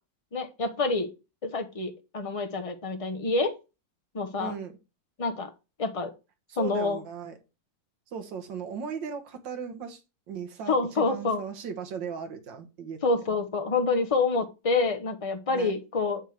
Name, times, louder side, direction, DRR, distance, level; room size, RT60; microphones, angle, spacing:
voice 1, 0.3-1.1 1.4-3.5 4.1-4.5 5.2-5.5 5.8-6.1 6.6-7.0 10.7-11.4 13.0-16.2, left 3 dB, 55° left, 7 dB, 0.3 m, -27 dB
voice 2, 4.4-4.8 6.5-7.4 8.1-10.0 10.3-13.0 15.5-15.7, right 6 dB, 75° right, 6 dB, 1.9 m, -37 dB
8.7 x 3.4 x 6.3 m, 0.29 s
omnidirectional pair, 2.0 m